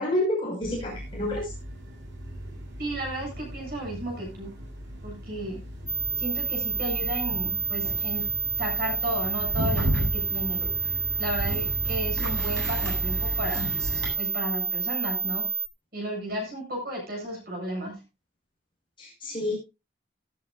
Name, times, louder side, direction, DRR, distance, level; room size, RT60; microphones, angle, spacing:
voice 1, 0.0-1.5 19.0-19.5, left 1 dB, 25° left, -3 dB, 5.8 m, -28 dB
sound 1, 0.6-14.1, equal, 80° right, 7.9 m, -35 dB
voice 2, 2.8-4.5 5.0-5.6 6.2-8.3 8.6-10.6 11.2-13.7 14.2-15.5 15.9-18.0, right 1 dB, 55° right, 1 dB, 7.7 m, -34 dB
sound 2, 5.9-15.7, right 3 dB, 5° left, 1.1 m, -29 dB
18.0 x 10.5 x 2.6 m, 0.26 s
head